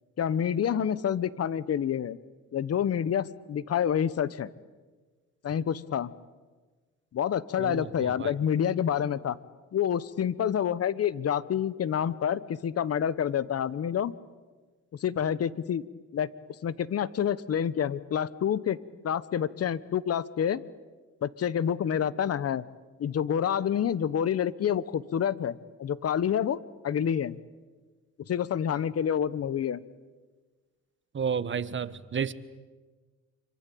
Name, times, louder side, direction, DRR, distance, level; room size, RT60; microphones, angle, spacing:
voice 1, 0.2-2.2 2.5-4.5 5.4-6.1 7.1-9.4 9.7-14.1 15.0-15.8 16.1-16.3 16.6-18.8 19.0-20.6 21.2-22.6 23.0-26.6 26.8-27.3 28.3-29.8, left 9 dB, 55° left, 18 dB, 1.1 m, -28 dB
voice 2, 7.6-8.3 31.1-32.3, right 7 dB, 40° right, 15 dB, 1.3 m, -31 dB
26.5 x 24.5 x 8.7 m, 1.4 s
cardioid pair, 90°, 30 cm